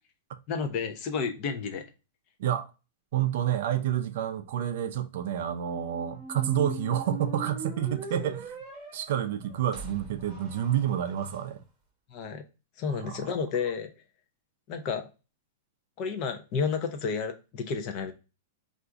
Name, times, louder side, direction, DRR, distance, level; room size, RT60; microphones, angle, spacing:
voice 1, 0.5-1.9 8.2-8.3 12.1-12.4 12.8-13.9 14.7-15.1 16.0-18.1, left 5 dB, 35° left, 0.5 m, -31 dB
voice 2, 3.1-8.6 8.9-11.6 13.1-13.3, right 10 dB, 60° right, 0.4 m, -29 dB
sound 1, 5.4-11.4, right 1 dB, 15° right, 0.8 m, -41 dB
2.5 x 2.3 x 3.8 m
supercardioid pair, 155°, 0 cm